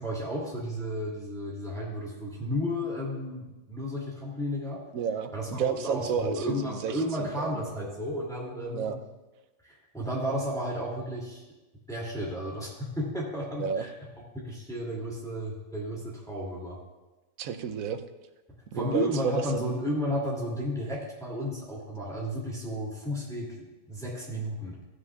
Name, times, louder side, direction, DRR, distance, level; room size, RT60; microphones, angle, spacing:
voice 1, 0.0-4.8 5.3-8.9 9.6-11.4 11.9-13.9 14.4-16.8 18.7-24.7, equal, ahead, -6 dB, 2.4 m, -33 dB
voice 2, 4.9-7.5 8.7-9.0 13.6-13.8 17.4-18.0 18.7-19.6, right 7 dB, 85° right, 9 dB, 1.1 m, -31 dB
15.0 x 9.8 x 2.4 m, 1.1 s
omnidirectional pair, 1.4 m